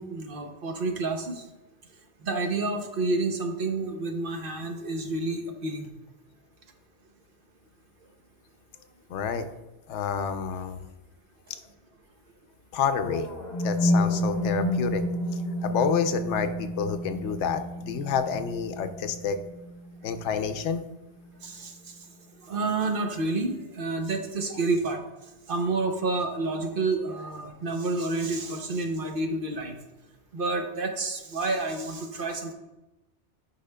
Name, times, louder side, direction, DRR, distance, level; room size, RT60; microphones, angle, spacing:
voice 1, 0.0-1.4 2.2-5.9 21.4-21.7 22.5-25.0 25.5-29.7 30.3-32.5, right 3 dB, 55° right, 4 dB, 0.8 m, -29 dB
voice 2, 9.1-9.5 9.9-10.8 12.7-13.3 13.6-15.0 15.6-19.4 20.0-20.8, left 6 dB, 80° left, 9 dB, 0.9 m, -28 dB
sound 1, 13.0-21.0, equal, 40° left, 0.9 m, -30 dB
10.0 x 5.6 x 2.2 m, 0.99 s
omnidirectional pair, 1.2 m